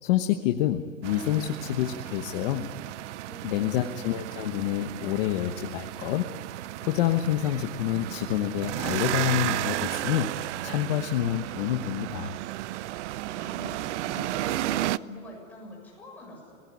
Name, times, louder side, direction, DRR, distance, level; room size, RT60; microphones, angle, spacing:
voice 1, 0.0-2.7 3.4-6.3 6.8-12.4, left 12 dB, 45° left, 5 dB, 1.1 m, -28 dB
sound 1, 1.0-15.0, right 15 dB, 65° right, 0.6 m, -33 dB
voice 2, 3.2-3.9 13.2-16.6, left 1 dB, 5° left, -3 dB, 7.1 m, -44 dB
26.0 x 19.0 x 9.9 m, 2.3 s
supercardioid pair, 170°, 38 cm